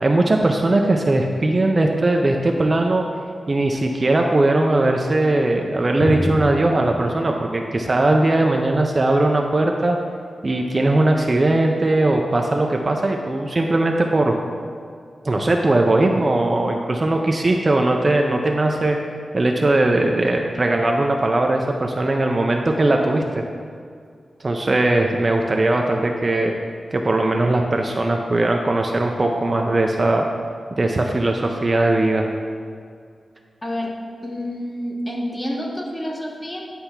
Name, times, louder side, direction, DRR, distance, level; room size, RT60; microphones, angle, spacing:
voice 1, 0.0-3.0 3.5-10.0 10.4-14.3 15.2-19.0 19.3-23.4 24.4-26.5 26.9-30.3 30.7-32.3, right 2 dB, 30° right, 2 dB, 0.5 m, -19 dB
Drum, 6.0-9.5, left 1 dB, 80° left, 1.3 m, -30 dB
voice 2, 33.6-33.9 34.2-36.6, equal, 20° left, -1 dB, 1.1 m, -28 dB
9.7 x 3.4 x 5.8 m, 2.2 s
wide cardioid pair, 120°, 0 cm